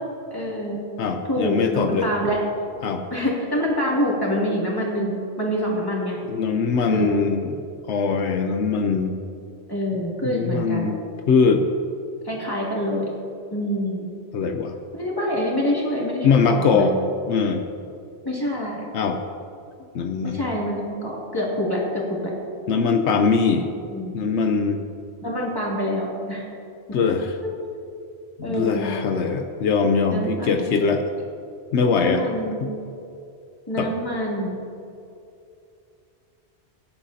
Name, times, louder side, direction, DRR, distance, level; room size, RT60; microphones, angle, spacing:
voice 1, 0.3-0.8 1.3-2.4 3.1-6.2 6.9-7.2 9.7-10.9 12.2-13.1 13.5-14.1 14.9-17.0 18.2-18.8 20.2-22.3 23.9-24.2 25.2-26.4 26.9-27.0 27.4-27.5 28.4-29.1 30.1-30.6 31.9-32.7 33.7-34.5, equal, 20° left, -5 dB, 2.7 m, -26 dB
voice 2, 1.0-2.1 2.8-3.0 6.3-7.6 7.9-9.2 10.2-11.0 11.3-11.6 14.3-14.8 16.2-16.9 17.3-17.7 18.9-19.2 19.9-20.5 22.7-23.7 24.1-24.8 26.9-27.3 28.4-31.0 31.7-32.2 32.6-32.7 33.8-33.9, left 5 dB, 85° left, 5 dB, 1.0 m, -21 dB
18.5 x 10.0 x 2.8 m, 2.5 s
omnidirectional pair, 1.1 m